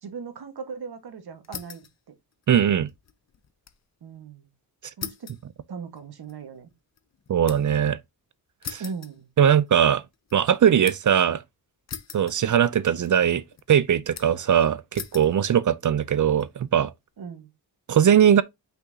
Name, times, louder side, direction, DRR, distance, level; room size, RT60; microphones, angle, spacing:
voice 1, 0.0-2.1 4.0-4.5 5.0-5.3 5.7-6.7 8.8-9.3 17.2-17.5, right 5 dB, 70° right, 1.5 m, -38 dB
sound 1, 1.4-2.0 2.3-3.8 4.2-4.3 5.0-7.8 8.6-9.8 10.1-11.2 11.9-12.8 13.0-13.6 14.2-14.5 14.9-15.4 16.0-16.5, left 7 dB, 40° left, 0.6 m, -41 dB
voice 2, 2.5-2.9 7.3-8.0 8.7-8.8 9.4-10.0 10.3-11.4 12.1-13.4 13.7-16.9 17.9-18.4, right 9 dB, 50° right, 0.5 m, -20 dB
6.0 x 5.7 x 2.8 m
wide cardioid pair, 140°, 40 cm